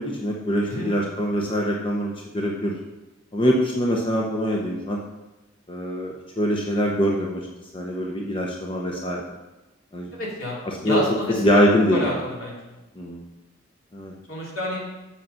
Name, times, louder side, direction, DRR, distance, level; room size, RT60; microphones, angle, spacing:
voice 1, 0.0-2.8 3.3-5.0 5.7-7.4 7.7-9.2 9.9-10.1 10.8-11.0 11.4-12.1 13.0-13.2 13.9-14.1, equal, 25° left, -1 dB, 0.8 m, -23 dB
voice 2, 10.1-11.4 11.9-12.8 14.3-14.8, left 1 dB, 75° left, -4 dB, 3.0 m, -29 dB
7.9 x 6.5 x 5.7 m, 1.1 s
head